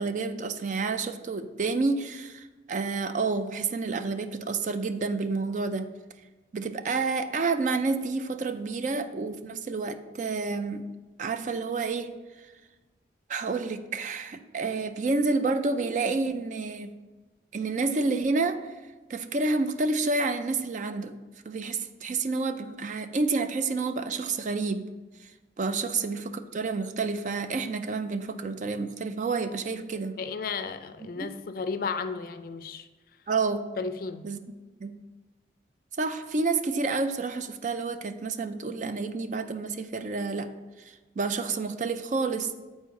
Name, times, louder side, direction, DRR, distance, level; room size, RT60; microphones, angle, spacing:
voice 1, 0.0-5.9 6.5-10.8 11.2-12.2 13.3-16.9 17.5-18.7 19.1-21.2 21.5-24.8 25.6-30.1 31.2-31.3 33.3-33.7 34.2-34.4 34.8-35.0 36.0-40.5 40.8-42.6, right 3 dB, 45° right, 10 dB, 0.4 m, -29 dB
voice 2, 30.2-32.9 33.8-34.3, left 5 dB, 50° left, 10 dB, 0.4 m, -33 dB
8.0 x 4.3 x 4.7 m, 1.2 s
head